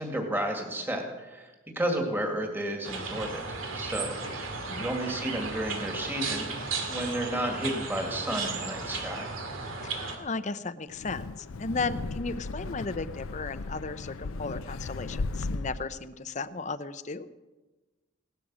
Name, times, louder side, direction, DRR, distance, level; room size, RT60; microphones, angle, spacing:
voice 1, 0.0-1.5 1.8-3.3 3.7-6.5 6.8-9.3, right 1 dB, 10° right, 2 dB, 2.2 m, -32 dB
sound 1, 2.8-10.2, right 4 dB, 80° right, 2.4 m, -35 dB
voice 2, 9.8-17.3, left 3 dB, 35° left, 13 dB, 0.6 m, -35 dB
Wind, 10.9-15.9, left 3 dB, 90° left, 0.6 m, -36 dB
17.5 x 12.5 x 6.2 m, 1.2 s
head